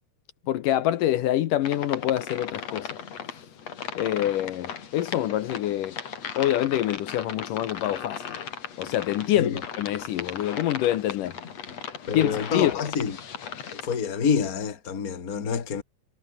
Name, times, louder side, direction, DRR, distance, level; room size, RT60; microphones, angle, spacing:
voice 1, 0.5-2.9 4.0-6.0 6.4-8.4 8.8-11.4 12.1-12.8, left 13 dB, 75° left, 2.6 m, -26 dB
sound 1, 1.6-14.0, left 7 dB, 50° left, 3.5 m, -37 dB
voice 2, 12.1-13.2 13.7-15.8, left 6 dB, 30° left, 2.2 m, -27 dB
omnidirectional pair, 3.9 m